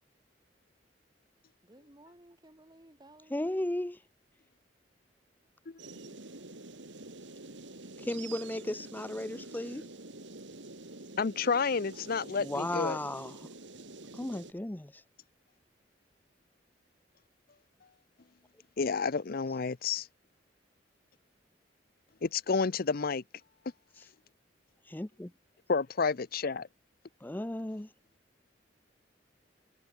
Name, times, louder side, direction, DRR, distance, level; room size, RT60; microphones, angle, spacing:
voice 1, 1.6-3.7, right 1 dB, 25° right, 4.8 m, -57 dB
voice 2, 3.3-4.0 8.0-9.9 12.4-13.5 14.1-15.0 24.9-25.3 27.2-27.9, left 1 dB, 10° left, 0.5 m, -35 dB
sound 1, 5.8-14.5, right 2 dB, 85° right, 3.5 m, -47 dB
voice 3, 11.2-13.0 18.8-20.1 22.2-23.2 25.7-26.7, left 5 dB, 55° left, 0.6 m, -30 dB
head